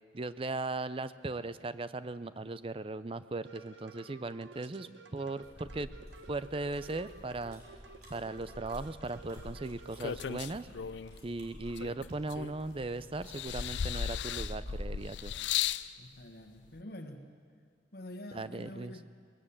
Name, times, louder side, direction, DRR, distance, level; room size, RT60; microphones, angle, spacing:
voice 1, 0.1-5.9 6.3-7.6 8.1-10.7 11.2-15.3 18.3-18.9, right 2 dB, 30° right, 14 dB, 0.5 m, -38 dB
sound 1, 3.4-10.4, right 4 dB, 90° right, 1.1 m, -53 dB
sound 2, 5.4-15.1, equal, 60° right, 4.9 m, -49 dB
sound 3, 9.4-11.2 11.8-12.8 13.3-15.9 16.8-16.9, left 9 dB, 75° left, 0.4 m, -36 dB
voice 2, 16.0-17.3 17.9-19.1, left 1 dB, 55° left, 4 dB, 1.5 m, -46 dB
20.5 x 15.5 x 8.7 m, 2.1 s
head